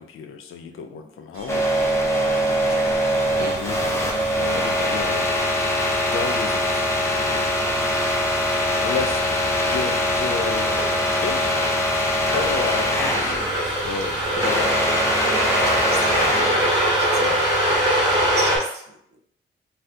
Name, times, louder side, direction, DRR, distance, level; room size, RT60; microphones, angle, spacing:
voice 1, 0.0-1.7 3.4-3.8 4.4-5.3 6.1-8.0 8.5-9.4 9.7-10.8 11.2-11.6 12.3-15.1 17.2-17.4 18.1-18.4, left 5 dB, 85° left, 6 dB, 0.5 m, -32 dB
sound 1, 1.3-15.4, right 3 dB, 90° right, 0.7 m, -41 dB
sound 2, 1.5-13.5 13.8-16.7, equal, 15° left, 0.5 m, -23 dB
voice 2, 2.7-3.0 3.3-3.6 12.2-12.5 15.1-19.2, right 4 dB, 55° right, 3 dB, 0.6 m, -36 dB
sound 3, 3.2-18.6, right 1 dB, 15° right, 1.3 m, -26 dB
2.6 x 2.4 x 3.3 m, 0.69 s
wide cardioid pair, 140°, 21 cm